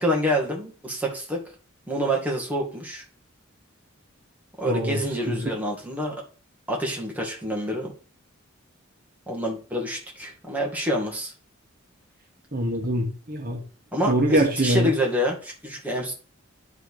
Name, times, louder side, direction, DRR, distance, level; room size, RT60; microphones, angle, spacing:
voice 1, 0.0-1.4 1.9-3.0 4.6-6.1 6.7-7.9 9.3-11.3 13.9-16.1, equal, 5° right, -1 dB, 2.2 m, -27 dB
voice 2, 4.7-5.0 5.3-5.4 12.5-13.6 14.1-14.9, right 1 dB, 40° right, 1 dB, 1.5 m, -23 dB
10.5 x 5.0 x 4.9 m, 0.37 s
head